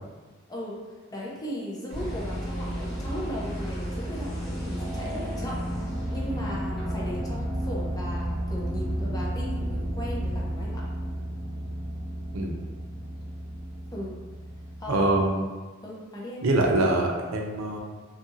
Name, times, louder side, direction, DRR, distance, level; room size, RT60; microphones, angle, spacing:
voice 1, 1.1-10.9 12.4-12.6 13.9-14.2 14.8-15.1 15.8-16.4, equal, 20° left, -4 dB, 0.5 m, -37 dB
sound 1, 1.9-15.3, equal, 5° right, 1.2 m, -32 dB
voice 2, 14.9-15.4 16.4-17.8, right 2 dB, 80° right, 0 dB, 0.5 m, -24 dB
2.7 x 2.4 x 2.7 m, 1.3 s
head